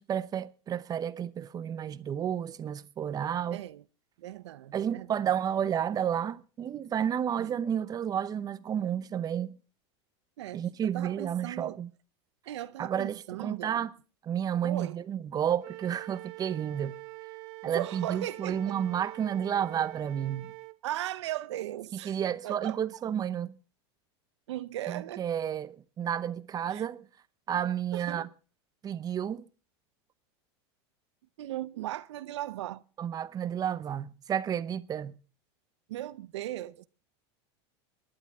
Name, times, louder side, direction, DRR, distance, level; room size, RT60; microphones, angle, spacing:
voice 1, 0.0-3.6 4.7-9.6 10.5-11.9 12.8-13.9 14.2-16.9 17.6-20.5 22.0-23.5 24.9-27.1 27.5-28.3 28.8-29.5 33.0-35.1, right 9 dB, 25° right, 0.8 m, -31 dB
voice 2, 3.5-3.8 4.2-5.1 7.4-7.5 10.4-10.6 10.9-11.8 12.5-13.9 14.6-15.0 17.7-18.8 20.8-22.2 22.4-22.8 24.5-25.2 26.7-26.9 27.9-28.3 31.4-32.8 35.9-36.8, right 14 dB, 90° right, 0.8 m, -37 dB
Wind instrument woodwind instrument, 15.6-20.8, right 25 dB, 65° right, 1.2 m, -45 dB
24.0 x 11.0 x 3.6 m
supercardioid pair, 130°, 14 cm